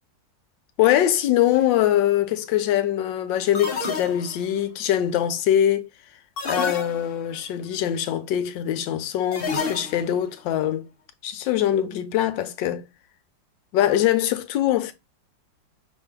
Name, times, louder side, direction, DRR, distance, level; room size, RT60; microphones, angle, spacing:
voice 1, 0.8-5.9 6.5-10.8 11.2-12.8 13.7-14.9, left 11 dB, 80° left, 1.3 m, -23 dB
sound 1, 1.5-1.9 3.5-4.6 6.4-7.4 9.3-10.2, left 4 dB, 50° left, 0.7 m, -30 dB
5.5 x 2.6 x 3.4 m
omnidirectional pair, 2.0 m